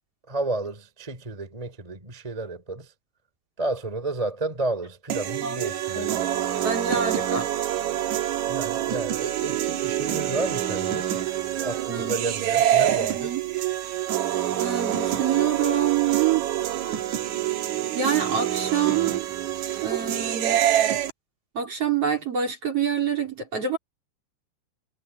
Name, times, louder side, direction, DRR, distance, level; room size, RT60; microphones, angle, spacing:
voice 1, 0.3-2.9 3.6-6.3 8.5-11.1 11.6-13.4, right 2 dB, 10° right, 2.6 m, -31 dB
sound 1, 5.1-21.1, right 12 dB, 60° right, 2.0 m, -26 dB
voice 2, 6.6-7.5 11.9-12.1 13.0-13.4 14.6-16.5 18.0-19.3 19.8-20.6 21.5-23.8, right 8 dB, 35° right, 4.0 m, -26 dB
omnidirectional pair, 5.2 m